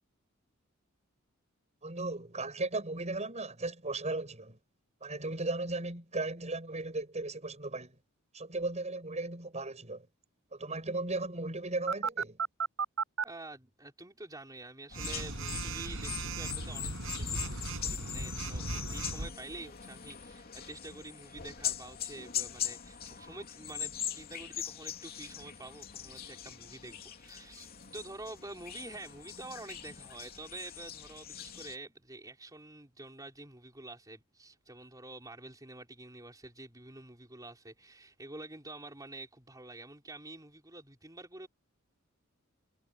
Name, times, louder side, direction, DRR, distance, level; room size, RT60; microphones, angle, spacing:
voice 1, 1.8-4.6 5.0-8.0 8.3-10.1 10.5-12.4, right 2 dB, 35° right, 6.8 m, -36 dB
Telephone, 11.9-13.2 14.9-19.3, right 4 dB, 65° right, 6.9 m, -36 dB
voice 2, 13.2-16.9 17.2-27.7 27.9-41.5, right 2 dB, 15° right, 4.9 m, -48 dB
sound 1, 14.9-31.8, left 9 dB, 45° left, 2.8 m, -41 dB
head